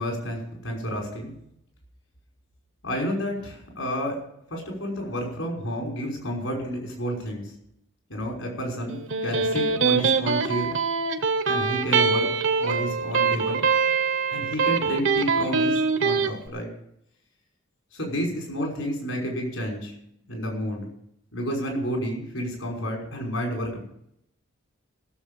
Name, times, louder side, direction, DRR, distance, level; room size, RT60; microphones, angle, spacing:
voice 1, 0.0-1.3 2.8-4.2 4.5-7.5 8.1-10.8 11.5-12.3 12.6-13.7 14.3-16.7 17.9-19.9 20.3-20.9 21.3-23.8, equal, 85° left, -1 dB, 5.5 m, -30 dB
Electric guitar, 8.9-16.3, right 5 dB, 70° right, 1.1 m, -23 dB
16.0 x 7.4 x 7.0 m, 0.74 s
head